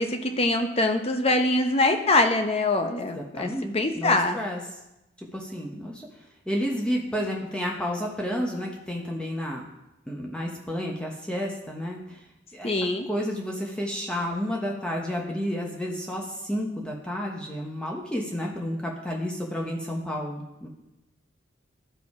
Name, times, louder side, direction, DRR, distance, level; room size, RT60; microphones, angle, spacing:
voice 1, 0.0-4.4 12.6-13.1, left 2 dB, 30° left, 6 dB, 0.7 m, -24 dB
voice 2, 3.1-4.6 5.2-6.1 6.5-9.6 10.1-12.2 12.5-12.7 13.1-20.7, equal, 5° left, -1 dB, 0.9 m, -31 dB
12.0 x 4.8 x 4.7 m, 0.93 s
head